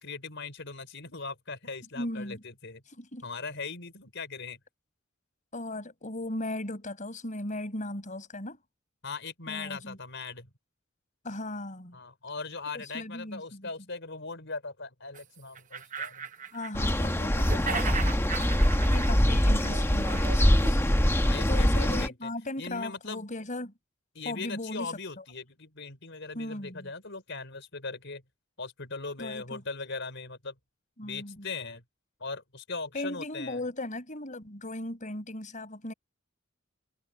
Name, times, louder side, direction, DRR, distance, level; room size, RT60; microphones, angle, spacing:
voice 1, 0.0-2.8 3.2-4.6 9.0-10.5 11.9-16.3 21.2-22.3 22.6-23.2 24.1-28.2 28.6-30.6 31.0-31.8 32.2-33.6, left 4 dB, 60° left, 5.1 m, -39 dB
voice 2, 2.0-2.4 3.0-3.3 5.5-8.6 9.5-10.0 11.2-12.0 12.7-13.7 16.5-18.1 18.9-21.0 21.5-23.7 24.3-25.2 26.4-26.9 29.2-29.6 31.0-31.5 32.9-35.9, left 1 dB, 40° left, 5.2 m, -37 dB
sound 1, 15.2-15.3 15.6-17.1 17.4-20.8, right 5 dB, 40° right, 0.9 m, -37 dB
sound 2, 16.7-22.1, equal, 10° left, 1.3 m, -24 dB
head